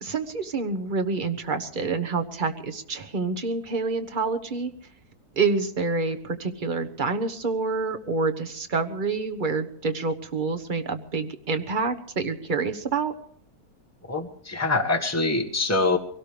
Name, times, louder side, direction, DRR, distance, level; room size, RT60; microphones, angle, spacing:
voice 1, 0.0-4.7 5.4-13.1, right 4 dB, 35° right, 6 dB, 1.3 m, -27 dB
voice 2, 14.1-16.0, left 3 dB, 10° left, 3 dB, 1.6 m, -24 dB
23.5 x 17.5 x 3.4 m, 0.66 s
omnidirectional pair, 1.6 m